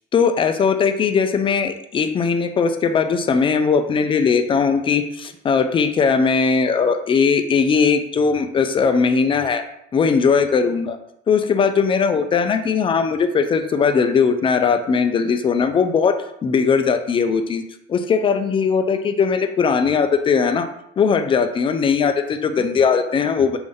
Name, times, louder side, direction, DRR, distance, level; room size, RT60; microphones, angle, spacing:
voice 1, 0.1-9.6 9.9-11.0 11.3-17.6 17.9-20.7 21.0-23.6, left 5 dB, 30° left, 8 dB, 0.4 m, -19 dB
3.5 x 2.6 x 3.4 m, 0.78 s
cardioid pair, 110°, 17 cm